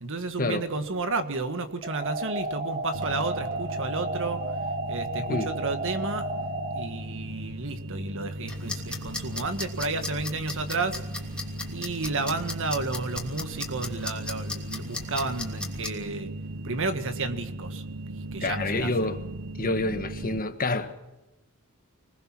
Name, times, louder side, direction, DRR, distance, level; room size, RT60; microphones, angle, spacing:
voice 1, 0.0-4.4 4.9-6.3 6.7-11.0 11.7-16.3 16.6-17.8 18.1-18.9, right 3 dB, 60° right, 9 dB, 1.7 m, -32 dB
sound 1, 1.8-6.8, right 2 dB, 40° right, 3.2 m, -32 dB
sound 2, 2.9-20.4, right 1 dB, 90° right, 1.0 m, -38 dB
sound 3, 8.5-15.9, left 2 dB, 5° left, 2.9 m, -37 dB
voice 2, 18.4-19.2 19.6-20.9, left 2 dB, 40° left, 8 dB, 1.5 m, -27 dB
25.5 x 19.0 x 6.1 m, 1.0 s
head